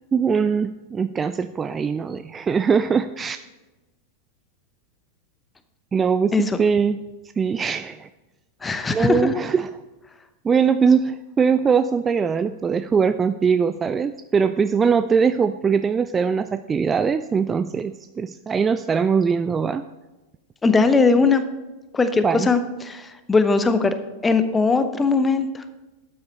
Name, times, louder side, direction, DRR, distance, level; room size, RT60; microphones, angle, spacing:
voice 1, 0.1-3.4 5.9-7.0 7.4-8.1 8.9-9.7 10.4-19.9 22.2-22.5, right 6 dB, 20° right, 12 dB, 0.3 m, -21 dB
voice 2, 8.6-9.3 20.6-21.4 21.9-22.6 22.9-23.9 24.2-25.6, left 4 dB, 15° left, 10 dB, 0.8 m, -19 dB
12.5 x 8.5 x 4.2 m, 1.1 s
figure-of-eight pair, 90°, 0 cm